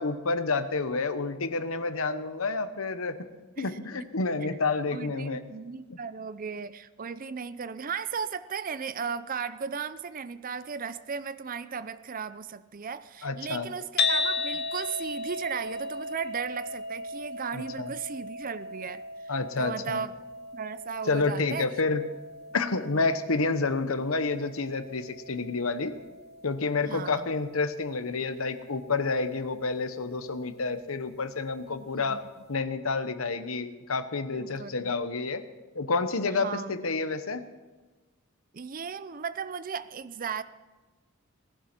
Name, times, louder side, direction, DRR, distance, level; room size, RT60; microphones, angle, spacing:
voice 1, 0.0-3.3 3.6-5.4 5.9-6.0 13.2-13.7 17.5-17.9 19.3-20.0 21.0-22.0 22.5-25.9 26.4-32.2 32.5-35.4 35.7-37.5, left 3 dB, 75° left, 10 dB, 1.0 m, -29 dB
voice 2, 4.9-20.1 20.5-21.7 26.8-27.3 31.8-32.2 34.3-34.9 36.3-37.0 38.5-40.4, right 6 dB, 40° right, 14 dB, 0.5 m, -36 dB
sound 1, 14.0-30.2, left 3 dB, 50° left, 1.0 m, -37 dB
18.5 x 11.5 x 6.0 m, 1.2 s
head